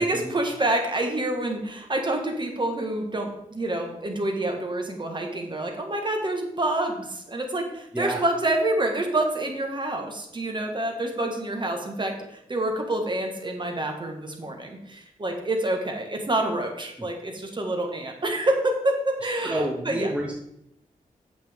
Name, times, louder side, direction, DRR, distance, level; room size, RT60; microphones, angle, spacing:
voice 1, 0.0-20.1, right 1 dB, 35° right, 3 dB, 1.5 m, -27 dB
voice 2, 19.4-20.4, right 1 dB, 10° right, -1 dB, 0.9 m, -28 dB
9.1 x 7.1 x 3.6 m, 0.77 s
wide cardioid pair, 115°, 15 cm